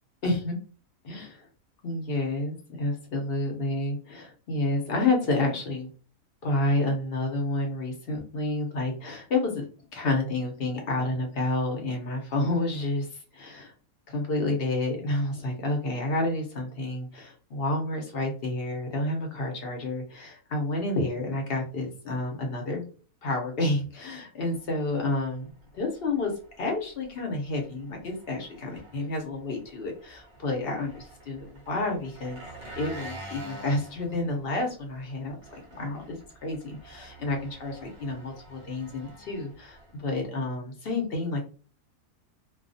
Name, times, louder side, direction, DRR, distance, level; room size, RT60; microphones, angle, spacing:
voice 1, 0.2-0.6 1.0-1.5 1.8-5.9 6.4-9.6 9.9-13.1 13.3-13.7 14.1-22.8 23.2-26.3 26.6-32.4 32.8-41.4, left 2 dB, 50° left, 2 dB, 0.8 m, -30 dB
Engine, 24.5-40.3, right 1 dB, 55° right, 0.5 m, -48 dB
2.3 x 2.2 x 2.6 m, 0.38 s
omnidirectional pair, 1.5 m